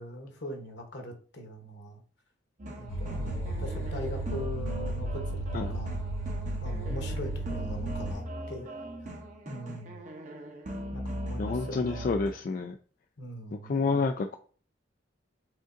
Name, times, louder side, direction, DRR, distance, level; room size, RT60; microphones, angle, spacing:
voice 1, 0.0-2.0 2.7-6.0 6.6-8.8 9.5-10.0 10.9-12.2 13.2-13.9, equal, 60° left, 4 dB, 1.1 m, -41 dB
sound 1, 2.6-12.3, right 1 dB, 40° right, 0.8 m, -40 dB
sound 2, 2.9-8.1, right 1 dB, 85° left, 0.6 m, -34 dB
voice 2, 11.4-12.8 13.7-14.3, left 4 dB, 45° left, 5 dB, 0.3 m, -29 dB
4.9 x 3.8 x 2.6 m, 0.42 s
head